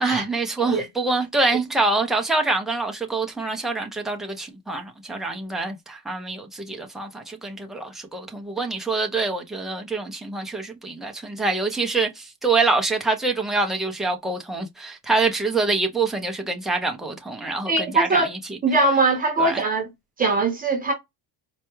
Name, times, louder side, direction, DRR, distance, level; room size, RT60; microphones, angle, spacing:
voice 1, 0.0-18.3 19.4-19.6, right 3 dB, ahead, 0.3 m, -25 dB
voice 2, 17.7-18.3 18.6-19.9 20.2-20.9, right 3 dB, 20° right, 0.9 m, -21 dB
4.2 x 2.3 x 2.9 m
cardioid pair, 165°, 42 cm